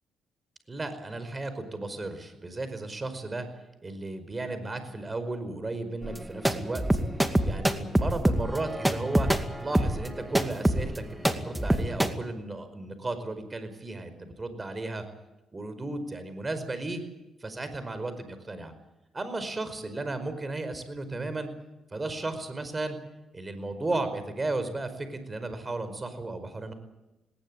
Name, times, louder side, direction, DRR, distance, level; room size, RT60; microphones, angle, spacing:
voice 1, 0.7-3.5 3.8-6.8 7.4-9.3 9.6-15.0 15.5-17.0 17.4-18.7 19.1-21.5 21.9-23.0 23.3-26.7, right 2 dB, 25° right, 10 dB, 5.0 m, -34 dB
sound 1, 6.0-12.1, right 1 dB, 10° right, 2.3 m, -25 dB
19.5 x 19.0 x 9.0 m, 0.98 s
cardioid pair, 80°, 0 cm